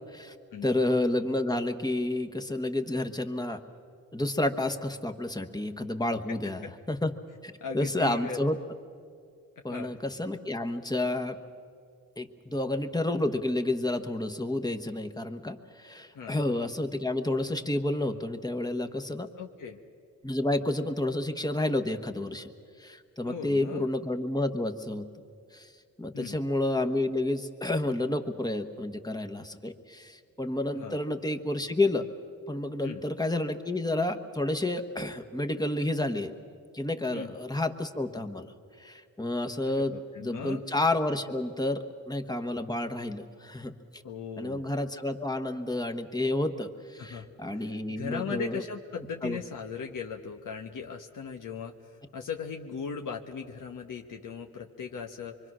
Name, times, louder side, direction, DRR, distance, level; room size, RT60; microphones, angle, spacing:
voice 1, 0.6-3.6 4.1-7.1 7.4-8.6 9.6-11.4 12.2-19.3 20.2-22.5 22.8-25.1 25.5-25.7 26.0-32.1 32.5-36.3 36.7-38.5 38.8-44.0 44.4-48.6 49.2-49.4, left 2 dB, 10° left, 5 dB, 1.2 m, -30 dB
voice 2, 6.3-6.7 7.6-8.4 9.7-9.9 16.1-16.4 19.4-19.8 23.2-23.9 26.1-26.4 30.7-31.0 32.8-33.0 37.1-37.3 39.7-40.6 44.0-44.6 47.0-51.7 52.1-55.5, left 6 dB, 75° left, 2 dB, 1.2 m, -38 dB
25.0 x 24.0 x 6.3 m, 2.3 s
cardioid pair, 90°, 32 cm